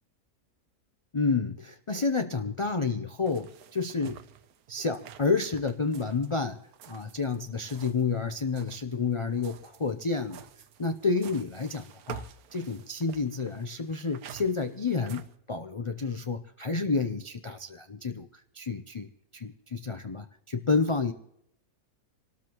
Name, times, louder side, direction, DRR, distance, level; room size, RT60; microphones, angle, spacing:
voice 1, 1.1-4.2 4.7-6.6 6.9-10.5 10.8-12.3 12.5-18.3 18.5-21.1, left 4 dB, 50° left, 6 dB, 0.3 m, -30 dB
sound 1, 3.2-8.1 8.4-15.4, right 9 dB, 80° right, 1.2 m, -49 dB
25.5 x 13.0 x 3.0 m, 0.79 s
omnidirectional pair, 1.6 m